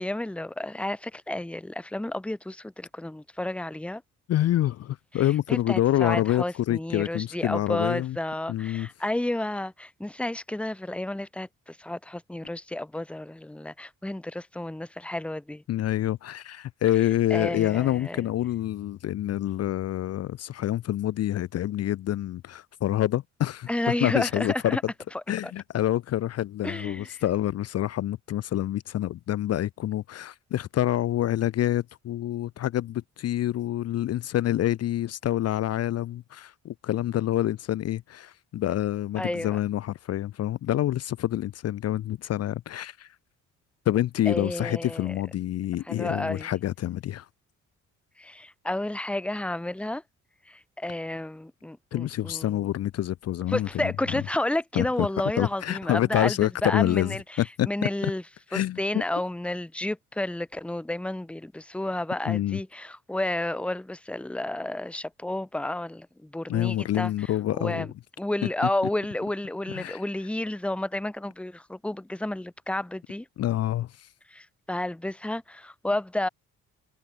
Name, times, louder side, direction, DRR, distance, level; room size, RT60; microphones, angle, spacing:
voice 1, 0.0-4.0 5.1-15.6 17.3-18.3 23.7-24.8 25.1-25.5 26.6-27.2 39.2-39.6 44.3-45.2 45.9-46.5 48.2-50.0 50.5-52.7 53.5-58.2 58.5-67.9 68.2-73.3 74.3-76.3, left 1 dB, 5° left, 0.9 m, -31 dB
voice 2, 4.3-8.2 8.5-8.9 15.7-24.8 25.3-43.1 43.9-47.3 51.9-53.9 54.8-55.1 55.4-57.7 58.5-59.0 62.3-62.6 66.5-67.9 69.7-70.0 73.4-74.1, left 13 dB, 55° left, 0.5 m, -27 dB
cardioid pair, 90°, 30 cm